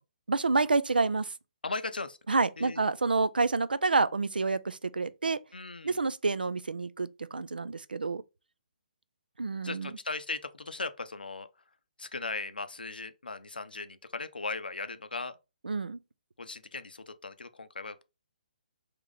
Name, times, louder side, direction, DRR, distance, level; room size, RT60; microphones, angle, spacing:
voice 1, 0.3-1.3 2.3-5.4 5.8-8.2 9.4-9.9 15.6-16.0, right 3 dB, 85° right, 0.3 m, -28 dB
voice 2, 1.6-2.2 2.6-2.8 5.5-6.0 9.6-11.5 12.0-15.4 16.4-18.0, left 3 dB, 85° left, 0.5 m, -38 dB
3.6 x 3.0 x 3.7 m
figure-of-eight pair, 135°, 5 cm